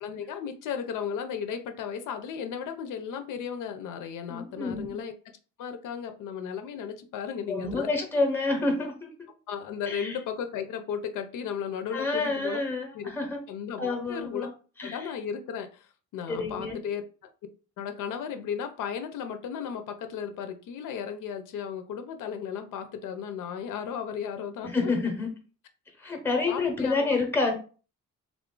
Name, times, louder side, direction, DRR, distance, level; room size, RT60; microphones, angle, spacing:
voice 1, 0.0-5.1 5.6-7.9 9.5-12.6 12.9-13.1 13.5-14.5 14.8-15.9 16.1-17.0 17.8-24.7 26.5-27.2, left 7 dB, 75° left, 7 dB, 0.5 m, -35 dB
voice 2, 4.3-5.0 7.5-9.1 9.9-10.2 11.9-13.4 13.8-14.5 14.8-15.1 16.3-16.8 24.6-25.3 26.0-27.5, left 3 dB, 5° left, 3 dB, 0.7 m, -28 dB
3.6 x 2.4 x 3.7 m, 0.37 s
cardioid pair, 160°, 32 cm